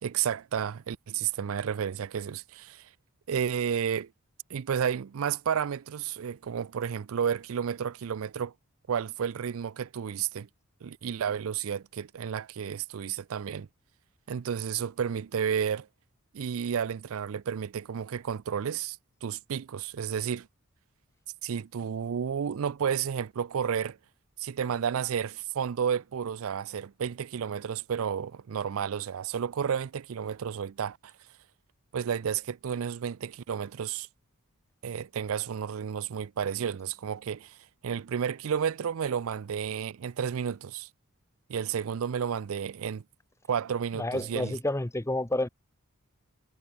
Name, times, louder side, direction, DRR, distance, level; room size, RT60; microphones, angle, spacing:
voice 1, 0.0-2.9 3.3-4.1 4.5-8.5 8.9-10.5 10.8-13.7 14.3-15.9 16.3-20.5 21.4-24.0 24.4-31.1 31.9-34.1 34.8-37.6 37.8-40.9 41.5-43.0 43.5-44.6, right 7 dB, 70° right, 0.4 m, -31 dB
voice 2, 43.9-45.5, left 1 dB, 15° left, 0.7 m, -29 dB
head